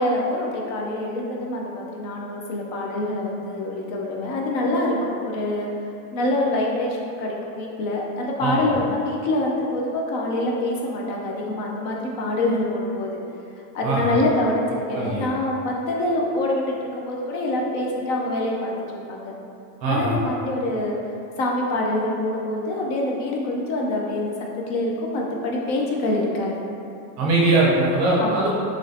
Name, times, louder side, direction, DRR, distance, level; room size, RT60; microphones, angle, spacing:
voice 1, 0.0-5.7 6.1-13.2 13.7-18.7 19.1-19.3 19.9-21.0 21.4-26.6 28.2-28.5, left 1 dB, 40° left, -1 dB, 0.5 m, -25 dB
voice 2, 8.4-8.8 13.8-14.2 14.9-15.2 19.8-20.1 27.2-28.5, right 2 dB, 35° right, -5 dB, 0.6 m, -21 dB
3.1 x 2.7 x 3.9 m, 2.6 s
supercardioid pair, 160°, 46 cm